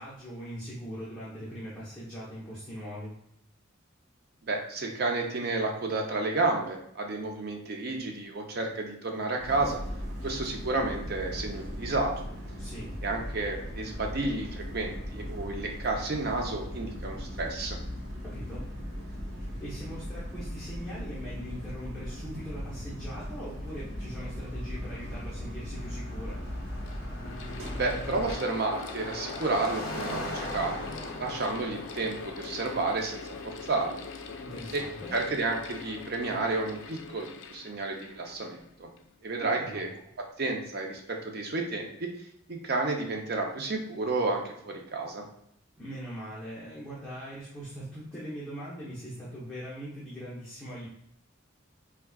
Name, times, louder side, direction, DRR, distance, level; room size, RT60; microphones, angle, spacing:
voice 1, 0.0-3.2 12.6-13.0 18.2-18.7 19.4-26.4 34.4-35.1 39.4-39.9 45.8-50.9, equal, 5° left, -10 dB, 0.8 m, -41 dB
voice 2, 4.5-9.8 10.2-12.3 13.0-17.8 27.7-34.0 34.7-34.8 35.1-38.9 39.2-39.9 40.4-42.1 42.5-45.2, right 3 dB, 50° right, 2 dB, 0.6 m, -31 dB
sound 1, 9.4-28.3, equal, 85° right, 1.0 m, -38 dB
Car passing by, 25.7-36.8, left 1 dB, 50° left, 0.7 m, -42 dB
Mechanical fan, 26.5-39.2, left 5 dB, 65° left, 0.4 m, -43 dB
4.5 x 2.3 x 2.3 m, 0.73 s
head